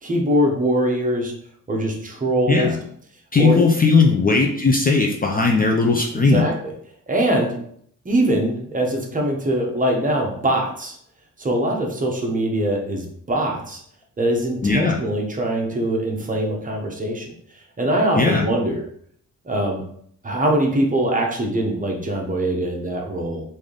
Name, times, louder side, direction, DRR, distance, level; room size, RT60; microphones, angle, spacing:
voice 1, 0.0-1.3 1.7-2.7 3.4-3.6 6.3-6.7 7.1-7.6 8.0-11.0 11.4-13.8 14.2-17.3 17.8-18.8 19.4-19.8 20.2-23.4, right 1 dB, 25° right, 0 dB, 0.8 m, -22 dB
voice 2, 2.5-2.8 3.3-6.5 14.6-15.0 18.2-18.4, left 4 dB, 25° left, 1 dB, 0.4 m, -18 dB
3.3 x 2.7 x 3.8 m, 0.64 s
wide cardioid pair, 120°, 33 cm